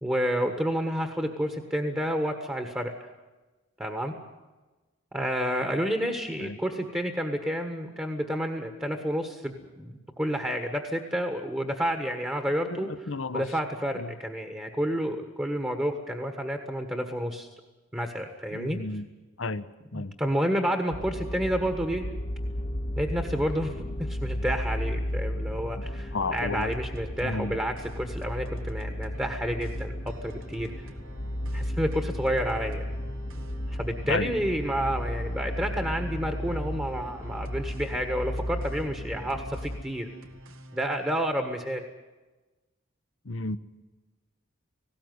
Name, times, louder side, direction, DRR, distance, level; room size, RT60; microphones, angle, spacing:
voice 1, 0.0-2.9 3.8-4.1 5.1-12.9 13.3-17.5 17.9-18.8 19.9-22.1 22.9-23.7 24.1-30.7 31.5-32.8 33.8-40.1 40.7-41.8, equal, 10° right, 5 dB, 1.4 m, -30 dB
voice 2, 12.7-13.4 13.9-14.1 18.5-19.1 19.4-19.7 19.9-20.1 25.8-25.9 26.1-26.7 27.2-27.6 34.0-34.4 43.2-43.6, left 3 dB, 70° left, 15 dB, 0.9 m, -32 dB
sound 1, 20.9-39.8, equal, 30° left, 1.0 m, -34 dB
sound 2, 26.4-41.2, right 1 dB, 80° right, 1.9 m, -48 dB
19.0 x 17.0 x 9.5 m, 1.2 s
head